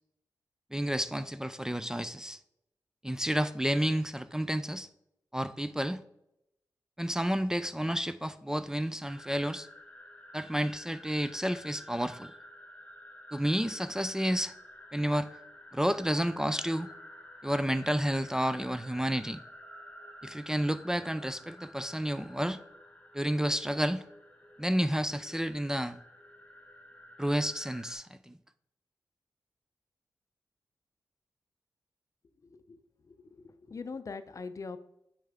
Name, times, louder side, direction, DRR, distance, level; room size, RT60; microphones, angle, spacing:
voice 1, 0.7-2.4 3.0-4.9 5.3-6.0 7.0-9.7 10.3-12.3 13.3-14.5 14.9-15.3 15.7-16.9 17.4-19.4 20.2-22.6 23.1-24.0 24.6-26.0 27.2-28.3, equal, 10° right, 0.4 m, -30 dB
sound 1, 9.0-27.9, left 1 dB, 15° left, 1.6 m, -51 dB
voice 2, 32.4-34.8, left 4 dB, 50° left, 0.6 m, -43 dB
8.7 x 5.7 x 3.6 m
cardioid pair, 70°, 7 cm